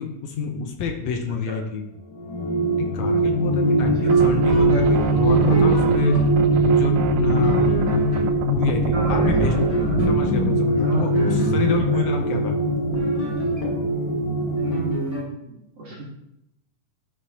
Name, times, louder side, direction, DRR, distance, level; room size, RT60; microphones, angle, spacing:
voice 1, 0.0-1.8 2.8-6.2 6.7-7.8 8.4-9.5 10.1-12.5, left 6 dB, 70° left, 3 dB, 1.7 m, -28 dB
sound 1, 2.1-14.9, right 2 dB, 45° left, 1.7 m, -21 dB
sound 2, 3.4-15.2, equal, 15° left, 2.2 m, -30 dB
sound 3, 3.8-10.4, right 6 dB, 85° right, 2.1 m, -29 dB
voice 2, 8.9-10.0 10.8-11.2 11.9-12.2 14.6-16.0, right 3 dB, 55° right, -5 dB, 2.3 m, -34 dB
11.5 x 5.2 x 2.8 m, 0.83 s
omnidirectional pair, 3.7 m